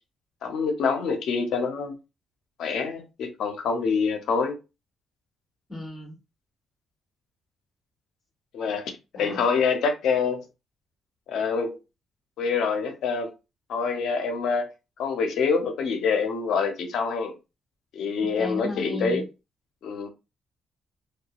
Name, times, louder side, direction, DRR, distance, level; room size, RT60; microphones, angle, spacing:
voice 1, 0.4-2.0 2.6-4.6 8.5-10.4 11.3-11.8 12.4-13.3 13.7-14.7 15.0-17.3 17.9-19.2 19.8-20.1, left 5 dB, 75° left, 0.6 m, -26 dB
voice 2, 5.7-6.1 9.1-9.4 18.2-19.2, left 1 dB, 30° left, 1.2 m, -34 dB
2.7 x 2.2 x 2.3 m
cardioid pair, 90°, 0 cm